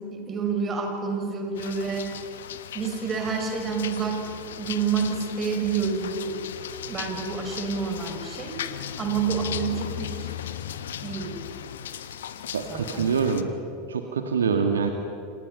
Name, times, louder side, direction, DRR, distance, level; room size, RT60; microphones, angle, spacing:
voice 1, 0.1-2.1 2.7-4.3 4.6-6.4 6.9-8.6 9.0-10.3 11.0-11.4 12.7-13.0, right 5 dB, 25° right, 3 dB, 5.9 m, -28 dB
sound 1, 1.5-13.4, left 10 dB, 65° left, 1.2 m, -37 dB
voice 2, 12.5-13.5 13.9-14.9, right 6 dB, 70° right, 5 dB, 2.0 m, -25 dB
30.0 x 27.5 x 5.7 m, 2.6 s
figure-of-eight pair, 85°, 0 cm